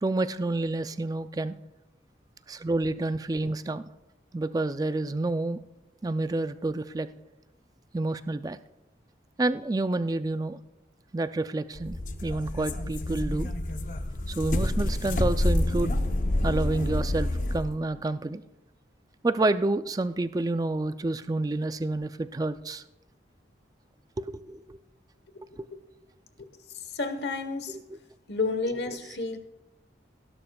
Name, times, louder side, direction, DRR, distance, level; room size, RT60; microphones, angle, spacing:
voice 1, 0.0-1.6 2.5-3.8 4.3-5.6 6.0-7.1 7.9-8.6 9.4-10.6 11.1-13.5 14.3-16.0 16.4-18.4 19.2-22.8 24.2-24.8 25.6-25.7 27.9-28.0, right 2 dB, 20° right, 12 dB, 0.3 m, -29 dB
sound 1, 11.7-17.7, left 1 dB, 45° left, 0.7 m, -28 dB
voice 2, 26.7-27.8 28.3-29.4, left 3 dB, 70° left, 9 dB, 1.2 m, -31 dB
17.5 x 11.0 x 2.3 m, 0.97 s
head